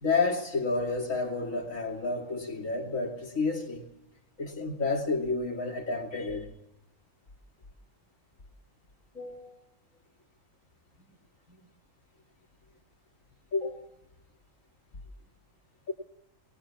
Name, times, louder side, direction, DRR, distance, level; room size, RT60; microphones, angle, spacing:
voice 1, 0.0-3.9 4.4-6.5 9.1-9.6 13.5-13.9 15.9-16.0, left 3 dB, 80° left, 3.1 m, -30 dB
22.0 x 19.5 x 7.3 m
omnidirectional pair, 1.4 m